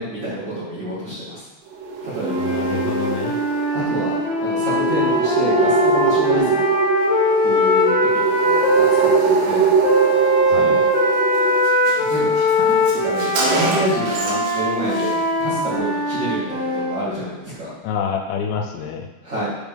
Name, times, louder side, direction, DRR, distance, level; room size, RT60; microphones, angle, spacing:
voice 1, 0.0-1.4 2.0-2.5 3.7-4.1 4.4-6.6 7.4-9.7 10.4-10.8 12.0-13.3 13.6-17.7 19.2-19.5, right 1 dB, 55° right, -10 dB, 1.2 m, -28 dB
sound 1, 1.7-11.6, right 6 dB, 85° right, 2.9 m, -22 dB
sound 2, 2.2-9.1 9.8-17.0, left 1 dB, 60° left, 2.3 m, -20 dB
voice 2, 2.4-3.4 10.5-10.8 17.8-19.1, left 6 dB, 85° left, 3 dB, 2.7 m, -27 dB
Car, 10.9-11.1 11.3-11.4 11.6-14.6 14.9-15.1, right 2 dB, 70° right, 2.6 m, -26 dB
6.5 x 5.3 x 3.5 m, 1.0 s
omnidirectional pair, 5.0 m